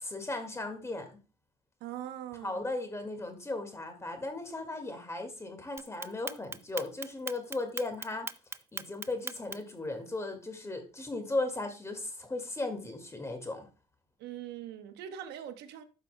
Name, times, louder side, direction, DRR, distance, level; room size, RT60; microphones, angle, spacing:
voice 1, 0.0-1.2 2.4-8.3 8.7-13.7, left 2 dB, 15° left, 1.9 m, -36 dB
voice 2, 1.8-2.7 14.2-15.8, right 10 dB, 80° right, 0.9 m, -42 dB
Clock, 5.8-9.8, right 4 dB, 15° right, 0.4 m, -39 dB
12.5 x 5.6 x 2.2 m
cardioid pair, 110°, 17 cm